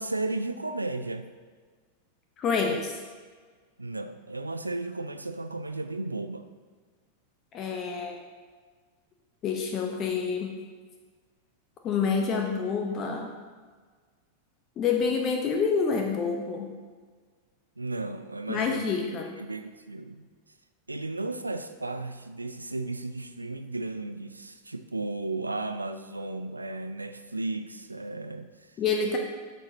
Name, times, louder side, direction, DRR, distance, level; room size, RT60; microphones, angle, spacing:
voice 1, 0.0-1.3 3.8-6.5 17.8-18.9 19.4-20.3 20.9-28.8, right 2 dB, 80° right, 9 dB, 0.4 m, -34 dB
voice 2, 2.4-2.9 7.5-8.2 9.4-10.6 11.8-13.3 14.8-16.7 18.5-19.3 28.8-29.2, left 5 dB, 30° left, 2 dB, 0.8 m, -27 dB
12.0 x 6.4 x 2.8 m, 1.5 s
figure-of-eight pair, 90°, 0 cm